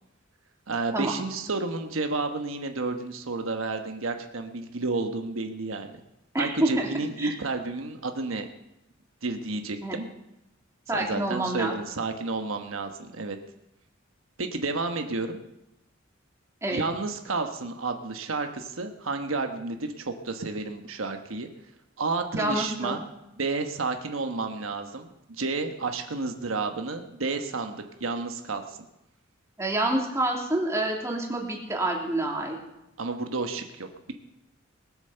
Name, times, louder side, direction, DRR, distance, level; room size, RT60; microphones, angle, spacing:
voice 1, 0.7-6.0 6.4-8.5 9.2-10.1 10.9-13.4 14.4-15.4 16.7-21.5 22.0-23.0 23.4-28.8 33.0-34.1, right 3 dB, 85° right, 6 dB, 1.2 m, -31 dB
voice 2, 6.3-6.9 7.2-7.3 9.8-10.0 10.9-11.7 16.6-16.8 22.3-23.0 29.6-32.6, right 1 dB, 15° right, -1 dB, 2.7 m, -27 dB
19.5 x 8.3 x 6.7 m, 0.89 s
head